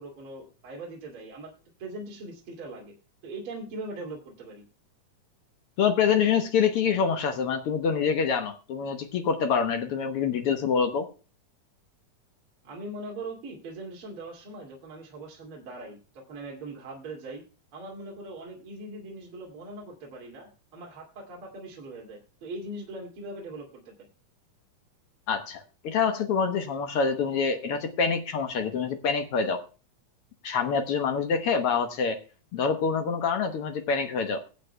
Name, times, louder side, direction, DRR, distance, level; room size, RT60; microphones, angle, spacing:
voice 1, 0.0-2.9 3.2-4.6 12.6-17.4 17.7-24.1, right 2 dB, 45° right, -2 dB, 3.2 m, -41 dB
voice 2, 5.8-11.1 25.3-29.6 30.4-32.2 32.5-34.4, left 6 dB, 65° left, 7 dB, 1.5 m, -26 dB
22.5 x 7.9 x 2.3 m, 0.34 s
omnidirectional pair, 3.7 m